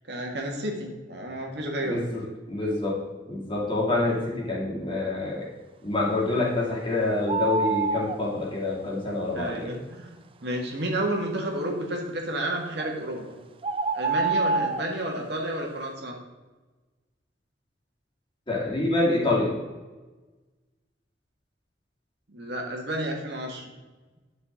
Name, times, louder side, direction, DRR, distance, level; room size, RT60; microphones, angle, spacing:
voice 1, 0.1-2.0 4.1-4.2 9.3-10.2 10.4-13.4 13.9-16.1 22.3-23.7, right 1 dB, 65° right, 1 dB, 1.9 m, -31 dB
voice 2, 1.8-3.0 3.2-5.5 5.8-9.7 18.5-19.6, left 2 dB, 30° left, -4 dB, 2.6 m, -27 dB
sound 1, 7.3-8.2 12.8-12.9 13.6-14.9, right 3 dB, 30° right, 0.4 m, -26 dB
10.5 x 6.3 x 3.7 m, 1.2 s
head